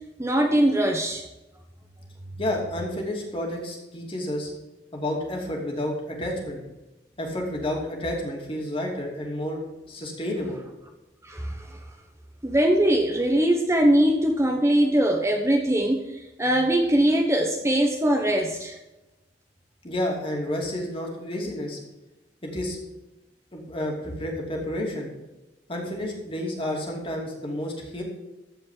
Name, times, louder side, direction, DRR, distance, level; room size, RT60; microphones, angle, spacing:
voice 1, 0.2-1.2 11.2-11.8 12.4-18.8, right 1 dB, 15° right, 2 dB, 1.0 m, -22 dB
voice 2, 2.4-4.5 4.9-6.6 7.2-10.6 19.8-21.8 22.4-22.8 23.5-25.1 25.7-28.0, left 1 dB, 30° left, -1 dB, 2.9 m, -30 dB
14.5 x 5.2 x 7.4 m, 1.0 s
head